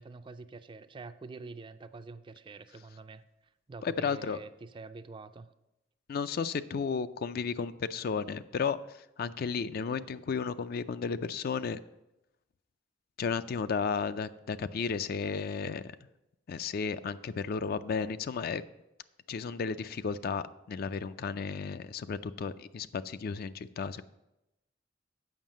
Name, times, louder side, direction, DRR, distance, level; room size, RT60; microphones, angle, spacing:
voice 1, 0.0-3.2 3.7-5.5, right 3 dB, 25° right, 11 dB, 0.4 m, -46 dB
voice 2, 3.8-4.4 6.1-8.8 9.2-11.8 13.2-15.8 16.5-18.6 19.3-24.0, left 5 dB, 50° left, 14 dB, 0.4 m, -33 dB
7.3 x 5.7 x 7.4 m, 0.92 s
head